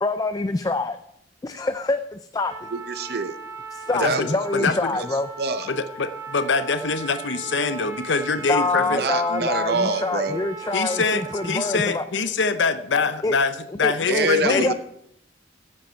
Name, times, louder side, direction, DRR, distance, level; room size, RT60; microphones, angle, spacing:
voice 1, 0.0-1.0 1.4-2.7 3.7-5.3 8.5-12.0 13.2-13.3 13.8-14.7, left 3 dB, 20° left, 9 dB, 0.4 m, -25 dB
Trumpet, 2.5-12.0, right 4 dB, 15° right, 1.9 m, -38 dB
voice 2, 2.7-3.3 4.0-5.1 5.4-5.7 8.8-10.4 14.1-14.7, right 2 dB, 60° right, 11 dB, 0.7 m, -26 dB
voice 3, 3.9-4.9 5.7-9.0 10.7-14.7, left 4 dB, 85° left, 11 dB, 0.7 m, -24 dB
15.0 x 7.7 x 4.5 m, 0.71 s
head